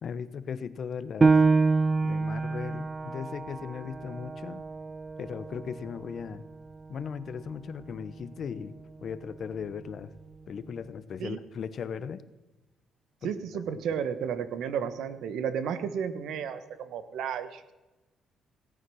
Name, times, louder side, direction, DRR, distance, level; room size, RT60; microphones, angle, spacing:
voice 1, 0.0-1.4 2.0-4.6 5.2-6.4 6.9-8.7 9.0-10.1 10.5-12.2 13.2-13.3, left 7 dB, 55° left, 15 dB, 0.9 m, -37 dB
Piano, 1.2-6.4 6.9-7.0 7.6-8.1, right 4 dB, 30° right, 0.5 m, -27 dB
voice 2, 13.2-17.6, right 7 dB, 80° right, 12 dB, 1.2 m, -32 dB
17.5 x 9.1 x 6.3 m, 1.1 s
cardioid pair, 90°, 0 cm